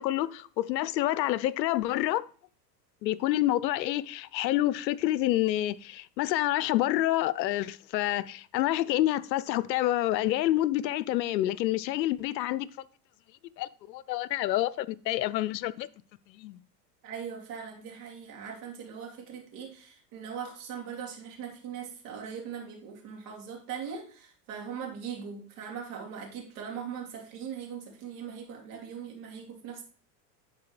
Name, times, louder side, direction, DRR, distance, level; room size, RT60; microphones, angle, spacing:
voice 1, 0.0-2.2 3.0-12.7 13.6-15.9 16.3-16.6, left 15 dB, 90° left, 0.6 m, -28 dB
voice 2, 17.0-29.8, right 7 dB, 55° right, 2.7 m, -40 dB
10.5 x 4.2 x 3.2 m
hypercardioid pair, 105°, 49 cm